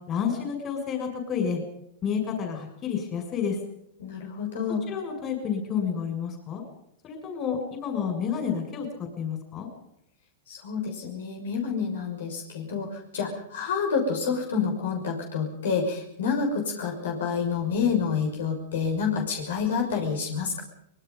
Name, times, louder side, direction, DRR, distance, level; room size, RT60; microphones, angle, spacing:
voice 1, 0.1-1.6 2.0-3.6 4.9-6.6 7.0-8.9 9.2-9.7, left 7 dB, 30° left, 5 dB, 6.3 m, -30 dB
voice 2, 4.0-4.8 10.5-20.6, left 6 dB, 80° left, 1 dB, 6.0 m, -28 dB
24.5 x 21.0 x 5.5 m, 0.74 s
hypercardioid pair, 120°, 0 cm